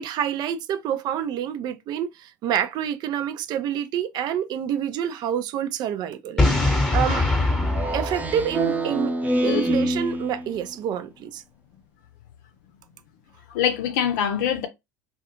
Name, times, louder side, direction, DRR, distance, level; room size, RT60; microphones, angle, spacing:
voice 1, 0.0-6.7 6.9-7.2 7.9-9.1 9.4-11.4, right 9 dB, 45° right, 0.4 m, -27 dB
Boom, 6.4-9.2, left 2 dB, 5° left, 1.0 m, -23 dB
Speech synthesizer, 7.6-10.6, right 1 dB, 15° right, 0.7 m, -26 dB
voice 2, 13.5-14.7, left 9 dB, 65° left, 0.6 m, -24 dB
2.4 x 2.2 x 2.8 m
figure-of-eight pair, 70°, 10 cm